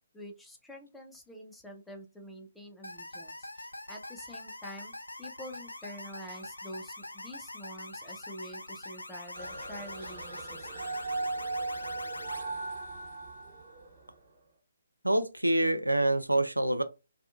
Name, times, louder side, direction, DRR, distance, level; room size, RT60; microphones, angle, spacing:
voice 1, 0.0-11.0, equal, 5° left, 0.4 m, -47 dB
sound 1, 2.8-12.4, left 1 dB, 80° left, 0.4 m, -44 dB
sound 2, 9.3-14.2, right 2 dB, 30° right, 1.0 m, -38 dB
voice 2, 15.0-16.8, right 1 dB, 90° right, 0.4 m, -26 dB
2.4 x 2.3 x 2.5 m
figure-of-eight pair, 140°, 0 cm